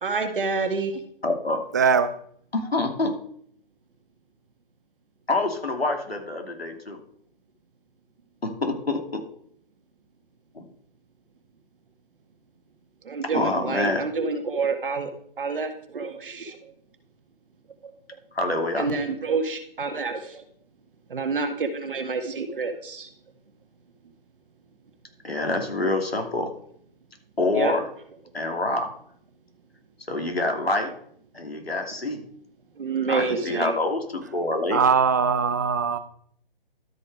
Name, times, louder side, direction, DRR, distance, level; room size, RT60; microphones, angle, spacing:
voice 1, 0.0-1.0 13.0-15.1 15.4-16.6 18.8-20.4 21.1-23.1 27.5-27.8 32.8-33.7, right 4 dB, 60° right, 7 dB, 1.8 m, -28 dB
voice 2, 1.2-1.6 2.5-3.2 5.3-7.0 8.4-9.2 10.5-10.6 13.3-14.1 18.3-18.9 25.2-26.5 27.4-27.9 28.3-28.9 30.1-30.9 31.3-32.2 33.1-34.8, left 2 dB, 85° left, 4 dB, 2.7 m, -26 dB
voice 3, 1.7-2.1 34.7-36.0, right 6 dB, 20° right, 12 dB, 0.4 m, -21 dB
12.5 x 6.6 x 4.7 m, 0.63 s
figure-of-eight pair, 140°, 30 cm